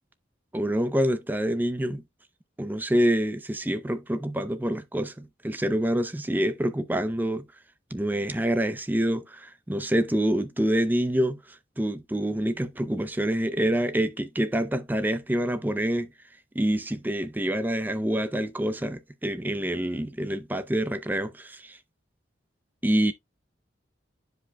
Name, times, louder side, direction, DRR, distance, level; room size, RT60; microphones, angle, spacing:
voice 1, 0.5-2.0 2.6-7.5 7.9-11.4 11.8-16.1 16.5-21.8 22.8-23.1, right 1 dB, 10° right, 0.5 m, -26 dB
10.5 x 5.0 x 2.2 m
head